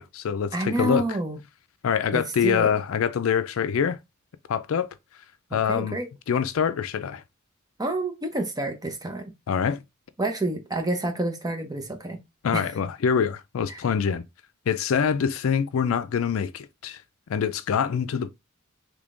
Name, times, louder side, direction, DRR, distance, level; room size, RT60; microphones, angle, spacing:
voice 1, 0.0-1.0 1.8-4.0 4.5-4.9 5.5-6.0 6.3-7.2 9.5-9.8 12.4-14.2 14.7-17.0 17.3-18.3, left 7 dB, 70° left, 0.4 m, -25 dB
voice 2, 0.5-1.4 2.1-2.7 5.5-6.1 7.8-9.3 10.2-12.2 12.5-12.7 13.7-13.8, right 2 dB, 20° right, 0.7 m, -28 dB
3.5 x 3.3 x 2.5 m
head